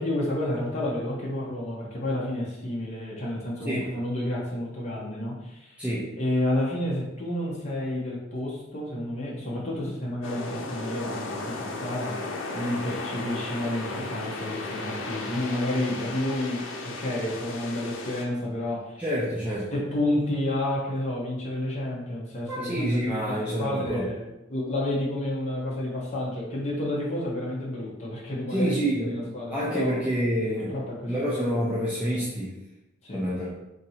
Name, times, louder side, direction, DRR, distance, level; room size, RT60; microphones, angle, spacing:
voice 1, 0.0-5.8 6.2-19.0 19.7-30.0 30.7-31.2 33.0-33.3, left 1 dB, 35° left, -4 dB, 0.7 m, -30 dB
voice 2, 3.6-3.9 5.8-6.1 19.0-19.7 22.5-24.1 28.5-30.7 31.1-32.5 33.1-33.5, equal, 5° right, -8 dB, 0.5 m, -28 dB
sound 1, 10.2-18.2, left 2 dB, 90° left, 0.6 m, -35 dB
2.7 x 2.6 x 4.1 m, 0.92 s
head